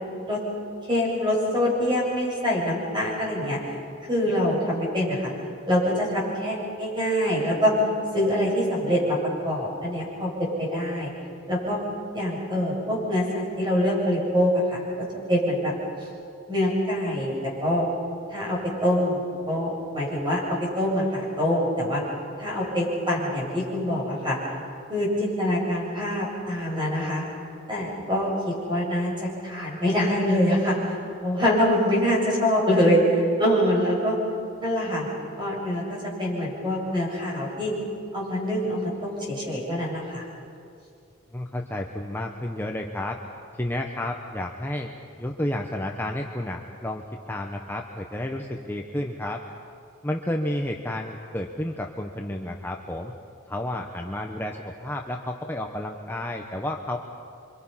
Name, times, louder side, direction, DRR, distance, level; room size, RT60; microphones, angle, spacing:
voice 1, 0.9-3.6 4.1-5.3 5.7-7.8 8.1-9.2 9.4-10.3 10.6-11.1 11.5-11.8 12.1-15.7 16.5-17.8 18.3-22.0 22.4-24.4 24.9-27.2 27.7-31.0 31.2-34.2 34.6-35.1 35.4-37.7 38.1-40.2, equal, 25° right, -4 dB, 7.8 m, -25 dB
voice 2, 41.3-43.2 43.6-44.9 45.2-49.4 50.0-53.1 53.5-57.0, left 1 dB, 10° left, 1 dB, 1.0 m, -31 dB
28.5 x 25.0 x 5.7 m, 2.4 s
head